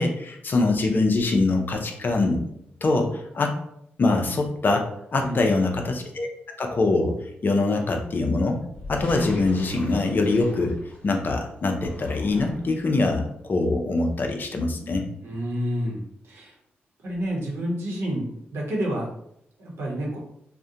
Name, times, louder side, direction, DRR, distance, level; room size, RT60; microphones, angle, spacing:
voice 1, 0.0-2.4 2.8-3.5 4.0-4.8 5.1-6.3 6.6-7.1 7.4-8.6 8.9-10.7 11.0-15.1, left 3 dB, 50° left, 3 dB, 0.4 m, -23 dB
voice 2, 5.2-5.7 15.2-16.6 17.0-18.3 18.5-19.1 19.6-20.2, equal, 70° right, -2 dB, 0.8 m, -29 dB
sound 1, 8.7-11.2 11.7-12.9, left 2 dB, 35° left, 0.9 m, -40 dB
2.4 x 2.1 x 2.7 m, 0.73 s
cardioid pair, 60°, 4 cm